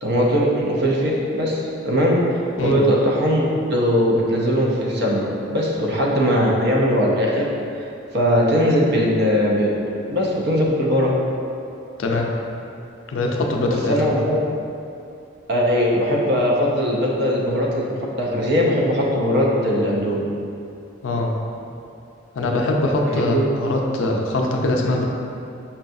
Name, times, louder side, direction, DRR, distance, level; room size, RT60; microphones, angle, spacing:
voice 1, 0.0-2.2 2.6-7.9 8.1-9.7 10.1-11.1 13.7-14.4 15.5-20.3 23.1-23.5, equal, 55° right, -3 dB, 0.5 m, -20 dB
voice 2, 13.1-13.9 21.0-21.3 22.4-23.3 23.7-25.1, left 2 dB, 70° left, 1 dB, 0.4 m, -22 dB
5.4 x 2.3 x 2.6 m, 2.6 s
head